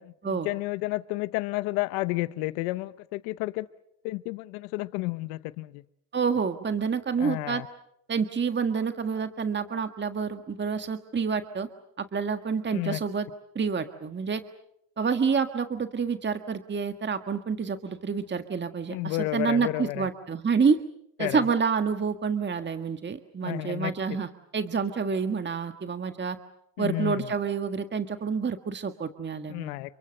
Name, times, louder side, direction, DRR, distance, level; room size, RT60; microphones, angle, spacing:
voice 1, 0.0-3.7 4.0-5.8 7.2-7.7 12.7-13.0 18.9-20.1 21.2-21.4 23.4-23.9 26.8-27.3 29.5-29.9, left 20 dB, 85° left, 0.9 m, -31 dB
voice 2, 6.1-7.6 8.1-11.7 12.0-13.3 13.5-14.4 15.0-20.8 21.2-26.4 26.8-29.7, right 5 dB, 25° right, 1.7 m, -28 dB
29.0 x 24.5 x 6.6 m
supercardioid pair, 85°, 43 cm